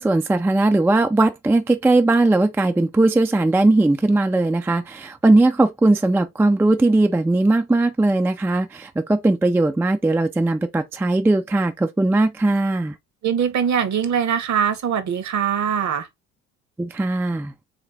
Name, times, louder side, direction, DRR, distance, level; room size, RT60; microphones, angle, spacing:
voice 1, 0.0-12.9 16.8-17.5, right 2 dB, 5° right, 0.4 m, -19 dB
voice 2, 13.2-16.1, right 8 dB, 45° right, 1.0 m, -22 dB
3.8 x 3.5 x 3.3 m
hypercardioid pair, 50°, 41 cm